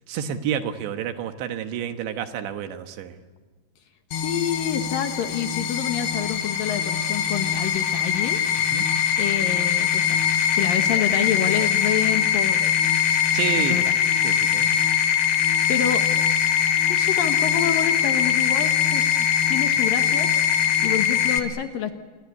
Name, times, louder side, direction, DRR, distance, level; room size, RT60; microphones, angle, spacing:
voice 1, 0.1-3.2 8.7-8.9 13.3-13.8 14.2-14.7, right 9 dB, 85° right, 7 dB, 3.7 m, -29 dB
sound 1, 4.1-21.4, left 8 dB, 85° left, 3.9 m, -22 dB
voice 2, 4.1-8.4 9.2-10.2 10.5-12.7 13.6-13.9 15.7-16.0 16.9-20.3 20.8-21.9, left 9 dB, 65° left, 7 dB, 2.6 m, -28 dB
27.5 x 21.5 x 8.4 m, 1.3 s
omnidirectional pair, 5.0 m